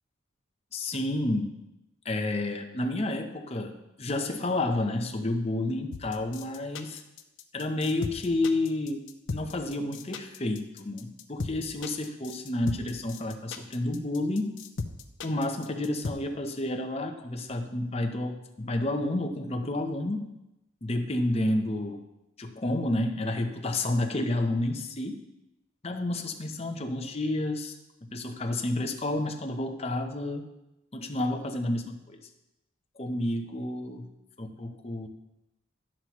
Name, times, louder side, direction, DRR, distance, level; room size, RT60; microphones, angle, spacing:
voice 1, 0.7-1.5 2.0-7.0 7.5-14.6 15.2-20.3 20.8-22.0 22.4-25.2 25.8-27.8 28.1-30.4 30.9-32.2 33.0-34.1 34.4-35.1, left 1 dB, 30° left, 5 dB, 0.7 m, -30 dB
sound 1, 5.9-16.1, left 4 dB, 65° left, 0.6 m, -36 dB
11.5 x 7.4 x 3.1 m, 0.93 s
head